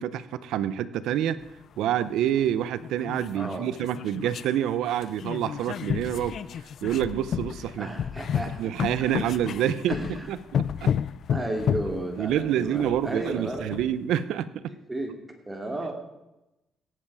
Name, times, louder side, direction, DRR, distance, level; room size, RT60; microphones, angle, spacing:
voice 1, 0.0-1.4 1.8-6.4 6.8-7.9 8.6-10.9 12.2-14.6, right 10 dB, 85° right, 15 dB, 0.6 m, -27 dB
sound 1, 1.4-1.5 2.4-2.5 2.8-4.6 4.9-13.9, left 8 dB, 65° left, 0.4 m, -31 dB
voice 2, 3.3-3.7 7.8-8.7 9.0-9.1 9.9-10.3 11.3-13.7 14.9-15.9, right 1 dB, 15° right, 3 dB, 2.7 m, -33 dB
17.0 x 7.6 x 4.8 m, 0.94 s
cardioid pair, 90°, 0 cm